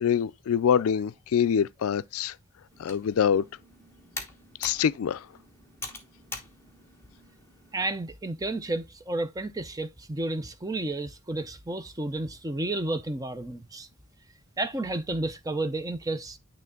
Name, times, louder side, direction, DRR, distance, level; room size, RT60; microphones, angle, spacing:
voice 1, 0.0-2.3 2.8-3.4 4.6-5.3, left 8 dB, 75° left, 0.3 m, -25 dB
Computer keyboard, 2.7-7.9, left 3 dB, 10° left, 1.1 m, -44 dB
voice 2, 7.7-13.9 14.6-16.4, right 2 dB, 15° right, 0.5 m, -31 dB
9.3 x 3.2 x 3.6 m
head